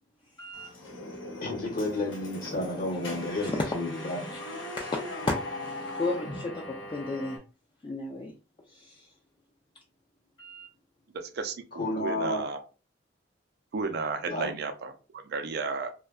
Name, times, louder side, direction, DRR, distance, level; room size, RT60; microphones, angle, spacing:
voice 1, 0.4-0.7 3.1-3.7 4.3-4.4 4.8-7.4 7.8-8.3 8.6-9.1 10.4-10.7, left 2 dB, 25° left, 0 dB, 0.3 m, -34 dB
sound 1, 0.5-7.4, left 1 dB, 80° left, 0.8 m, -39 dB
voice 2, 1.4-4.2 11.8-12.4 14.3-14.5, left 2 dB, 50° left, -1 dB, 0.9 m, -31 dB
voice 3, 11.1-11.5 11.9-12.6 13.7-15.9, right 4 dB, 60° right, 7 dB, 0.4 m, -33 dB
2.6 x 2.2 x 2.3 m, 0.34 s
head